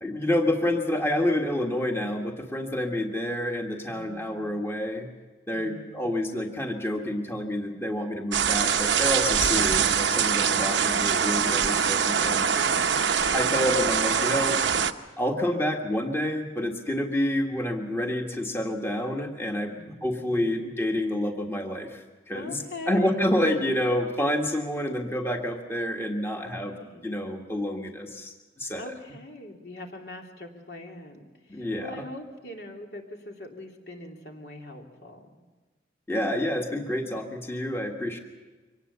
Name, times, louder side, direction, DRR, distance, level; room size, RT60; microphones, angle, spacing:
voice 1, 0.0-5.1 5.5-12.6 13.3-14.6 15.2-22.6 22.9-26.7 27.0-28.8 31.5-31.9 36.1-38.2, left 1 dB, 15° left, 2 dB, 1.6 m, -28 dB
voice 2, 3.9-4.6 5.5-6.1 12.5-13.6 19.8-20.6 22.3-23.3 26.3-27.0 28.7-35.4, left 2 dB, 65° left, 1 dB, 3.1 m, -42 dB
sound 1, 8.3-14.9, right 7 dB, 90° right, 1.0 m, -23 dB
24.0 x 19.0 x 6.8 m, 1.3 s
head